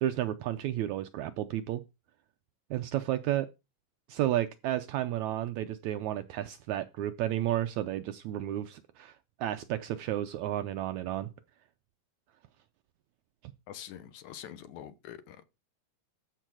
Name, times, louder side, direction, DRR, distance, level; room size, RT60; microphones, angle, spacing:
voice 1, 0.0-1.8 2.7-3.5 4.1-11.3 13.4-13.5, right 13 dB, 90° right, 1.6 m, -32 dB
voice 2, 13.7-15.4, left 10 dB, 70° left, 2.1 m, -45 dB
13.5 x 4.6 x 6.2 m
omnidirectional pair, 4.1 m